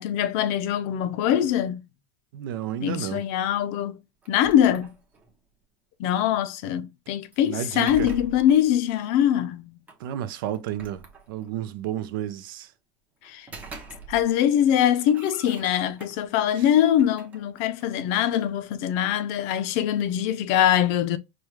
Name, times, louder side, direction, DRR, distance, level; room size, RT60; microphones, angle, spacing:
voice 1, 0.0-1.8 2.8-4.0 4.3-4.9 6.0-9.7 13.2-13.5 14.1-21.2, left 10 dB, 50° left, 0.4 m, -23 dB
voice 2, 2.3-3.2 7.4-8.1 10.0-12.7 16.6-16.7, right 11 dB, 85° right, 0.5 m, -32 dB
sound 1, 4.2-5.4 7.3-8.7 9.9-10.0 10.5-11.6 13.2-14.4 14.7-16.4 16.9-18.5, right 4 dB, 15° right, 0.6 m, -44 dB
4.8 x 2.2 x 3.0 m
supercardioid pair, 165°, 11 cm